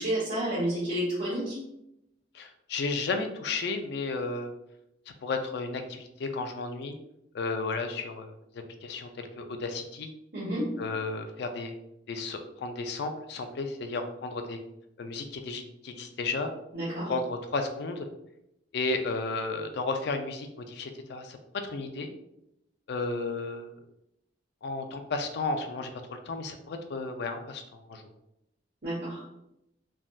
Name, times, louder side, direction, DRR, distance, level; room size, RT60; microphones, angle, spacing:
voice 1, 0.0-1.6 10.3-10.8 16.7-17.1 28.8-29.2, right 1 dB, 60° right, -10 dB, 1.1 m, -30 dB
voice 2, 2.3-4.5 5.1-7.0 7.3-10.1 10.8-11.7 12.1-14.6 15.0-16.5 17.1-18.1 18.7-22.1 22.9-23.8 24.6-28.0, left 3 dB, 65° left, 6 dB, 0.4 m, -33 dB
3.4 x 2.5 x 2.2 m, 0.83 s
head